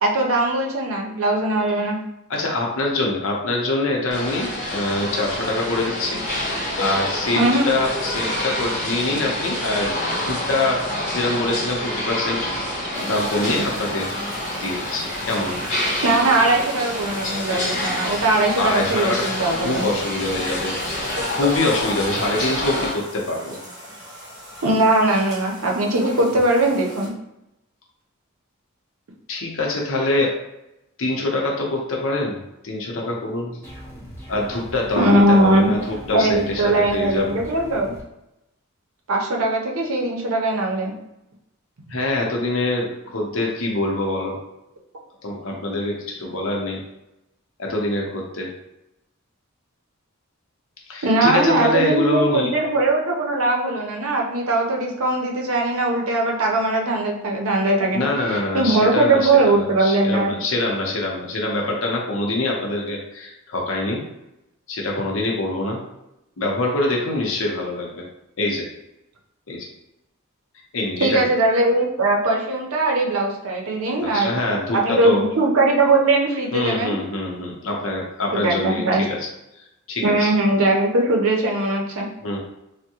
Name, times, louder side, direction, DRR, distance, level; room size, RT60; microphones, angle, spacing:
voice 1, 0.0-2.0 7.4-7.7 16.0-19.9 24.6-27.1 35.0-35.7 36.1-37.9 39.1-40.9 51.0-60.3 71.0-74.4 74.7-77.0 78.3-79.1 80.0-82.1, right 2 dB, 85° right, 0 dB, 0.6 m, -20 dB
voice 2, 2.3-6.2 6.8-10.0 10.2-12.5 13.0-14.1 14.6-15.6 18.6-23.6 29.3-30.3 31.0-32.4 32.6-33.6 34.3-37.4 41.9-44.4 45.2-46.8 47.6-48.5 50.9-52.6 57.9-64.0 64.7-65.8 66.4-68.0 68.4-68.7 69.5-69.7 70.7-71.3 73.9-75.2 76.5-79.3 79.9-80.3 82.2-82.4, left 2 dB, 65° left, -1 dB, 0.7 m, -24 dB
sound 1, 4.1-22.9, left 1 dB, 35° left, 0.9 m, -27 dB
sound 2, 12.9-27.1, equal, 20° right, 1.0 m, -39 dB
sound 3, 33.6-38.0, equal, 10° left, 0.6 m, -40 dB
3.4 x 2.1 x 2.8 m, 0.89 s
head